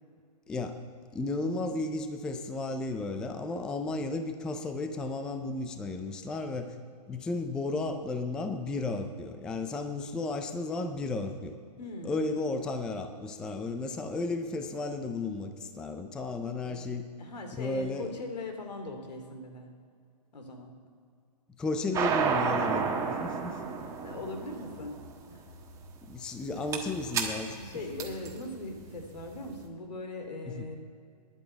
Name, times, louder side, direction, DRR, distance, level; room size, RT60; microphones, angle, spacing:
voice 1, 0.5-0.8 1.1-6.8 7.1-11.6 12.0-17.1 17.6-18.1 21.6-23.6 26.1-27.6 30.5-30.7, left 3 dB, 5° left, 7 dB, 0.3 m, -33 dB
voice 2, 11.8-12.4 16.6-16.9 17.2-19.7 20.3-20.7 24.0-25.0 25.3-25.4 27.6-30.8, left 2 dB, 80° left, 5 dB, 2.7 m, -40 dB
sound 1, 21.9-29.5, right 6 dB, 15° right, 1.3 m, -32 dB
10.5 x 9.0 x 8.0 m, 2.3 s
hypercardioid pair, 145°, 21 cm